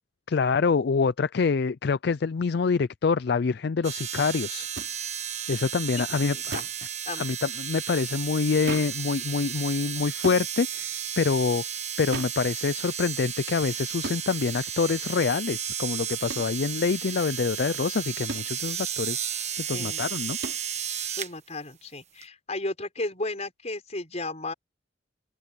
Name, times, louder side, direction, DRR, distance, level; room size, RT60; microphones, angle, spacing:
voice 1, 0.3-4.7 5.5-6.6 7.2-11.6 12.0-19.3 19.6-20.4, left 5 dB, 60° left, 0.4 m, -26 dB
sound 1, 3.8-21.3 22.2-22.3, right 9 dB, 40° right, 1.5 m, -33 dB
sound 2, 4.8-4.9 6.5-6.8 8.7-9.0 10.2-10.5 12.1-12.4 14.0-14.3 16.3-16.5 18.3-18.5 20.4-20.7, right 2 dB, 70° right, 4.3 m, -35 dB
voice 2, 6.3-6.7 7.1-7.3 19.7-20.3 21.2-24.5, left 2 dB, 35° left, 5.5 m, -34 dB
open air
head